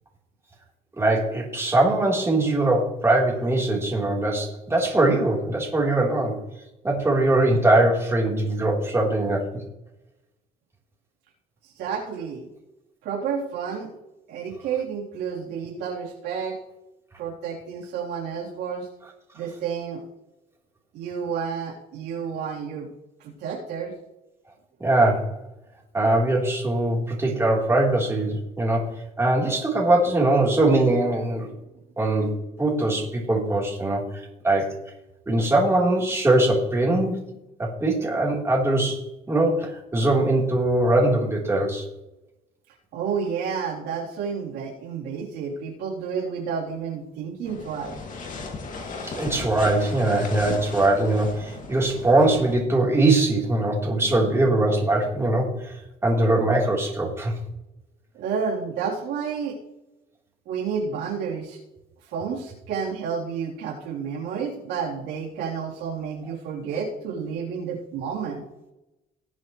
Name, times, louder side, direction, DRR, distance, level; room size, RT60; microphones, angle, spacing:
voice 1, 1.0-6.4 6.8-9.5 24.8-25.3 25.9-31.5 32.0-34.0 34.4-34.7 35.3-37.2 37.6-41.8 49.0-55.7 56.0-57.3, right 2 dB, 15° right, -3 dB, 3.7 m, -21 dB
voice 2, 11.6-12.5 13.0-13.9 14.3-16.6 17.2-18.9 19.3-20.0 20.9-22.9 23.2-23.9 42.9-48.0 58.1-59.6 60.5-61.6 62.1-68.4, right 6 dB, 90° right, -3 dB, 3.6 m, -30 dB
sound 1, 47.4-52.6, left 3 dB, 50° left, 2.5 m, -36 dB
19.0 x 7.6 x 3.2 m, 0.93 s
cardioid pair, 110°, 17 cm